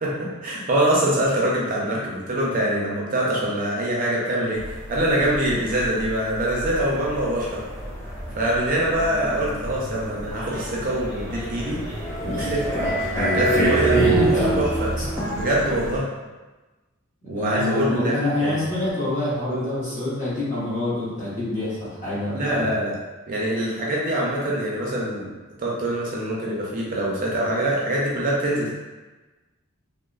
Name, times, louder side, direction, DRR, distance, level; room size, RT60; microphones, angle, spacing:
voice 1, 0.0-7.6 8.4-11.8 12.2-12.6 13.3-14.0 14.6-14.9 15.3-16.1 17.3-18.6 19.5-19.7 22.3-23.0 23.3-25.3 25.6-28.7, right 1 dB, 40° right, -4 dB, 0.5 m, -24 dB
sound 1, 4.6-16.0, right 2 dB, 15° left, 0.5 m, -27 dB
voice 2, 13.9-14.5 15.0-15.1 17.2-22.7, left 2 dB, 35° left, -10 dB, 1.0 m, -26 dB
3.0 x 2.0 x 2.3 m, 1.2 s
head